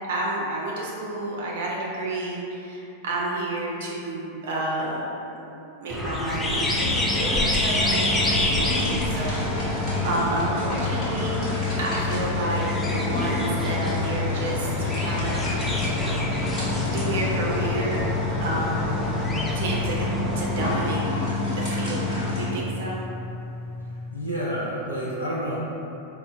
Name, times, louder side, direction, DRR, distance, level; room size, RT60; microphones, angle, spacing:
voice 1, 0.1-5.0 5.5-8.2 8.5-11.5 11.8-15.9 16.4-18.9 19.5-21.1 21.6-23.0, right 2 dB, 55° right, -3 dB, 0.4 m, -31 dB
sound 1, 5.9-20.7, left 1 dB, 15° left, 0.3 m, -29 dB
sound 2, 6.4-22.5, left 3 dB, 35° left, 0.9 m, -28 dB
sound 3, 12.9-24.1, left 2 dB, 25° right, 0.9 m, -37 dB
voice 2, 24.1-25.6, equal, 80° left, -8 dB, 0.7 m, -29 dB
4.3 x 2.1 x 2.3 m, 2.8 s
figure-of-eight pair, 90°, 0 cm